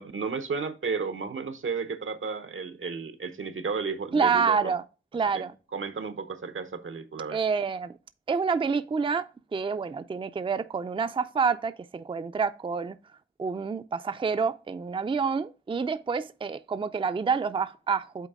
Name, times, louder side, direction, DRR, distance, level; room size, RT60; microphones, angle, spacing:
voice 1, 0.0-4.7 5.3-7.4, right 5 dB, 80° right, 0.9 m, -33 dB
voice 2, 4.1-4.8 5.1-5.5 7.3-7.9 8.3-13.0 13.4-18.3, right 5 dB, 25° right, 0.4 m, -28 dB
8.2 x 4.1 x 3.5 m
wide cardioid pair, 100°, 20 cm